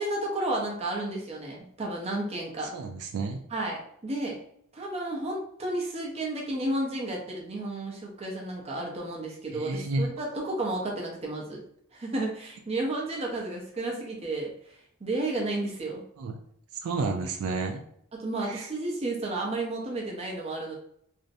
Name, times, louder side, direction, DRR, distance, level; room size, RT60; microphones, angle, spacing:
voice 1, 0.0-2.7 3.5-4.4 4.7-11.6 11.9-14.5 15.0-16.0 18.2-20.7, right 2 dB, 30° right, -2 dB, 0.6 m, -32 dB
voice 2, 2.7-3.4 9.5-10.1 16.2-16.3 16.8-17.8 18.4-18.7, right 3 dB, 80° right, 4 dB, 0.3 m, -31 dB
2.5 x 2.0 x 2.6 m, 0.69 s
head